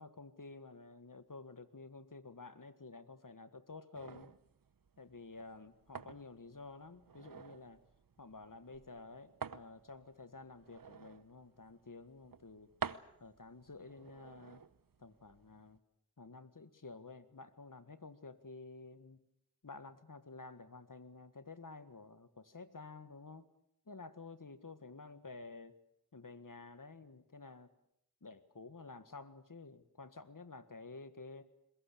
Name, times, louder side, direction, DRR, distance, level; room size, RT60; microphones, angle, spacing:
voice 1, 0.0-4.3 5.0-7.8 8.2-12.7 13.2-14.6 15.0-15.8 16.2-19.2 19.6-23.5 23.9-25.8 26.1-27.7 28.2-31.5, left 3 dB, 60° left, 12 dB, 1.7 m, -51 dB
sound 1, 3.9-15.8, right 6 dB, 65° right, 0.9 m, -50 dB
22.5 x 21.0 x 8.5 m, 0.74 s
wide cardioid pair, 50°, 36 cm